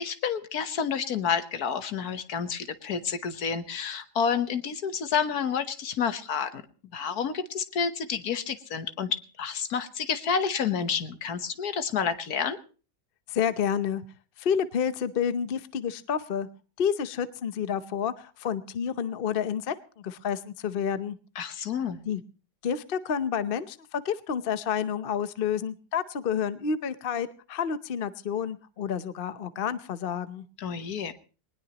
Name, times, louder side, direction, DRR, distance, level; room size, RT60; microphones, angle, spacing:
voice 1, 0.0-6.6 6.9-12.6 21.4-22.0 30.6-31.1, left 6 dB, 70° left, 11 dB, 1.6 m, -29 dB
voice 2, 13.3-14.0 14.4-16.5 16.8-21.2 22.1-22.2 22.6-30.4, left 7 dB, 45° left, 13 dB, 0.8 m, -29 dB
20.5 x 19.5 x 2.9 m, 0.37 s
omnidirectional pair, 1.7 m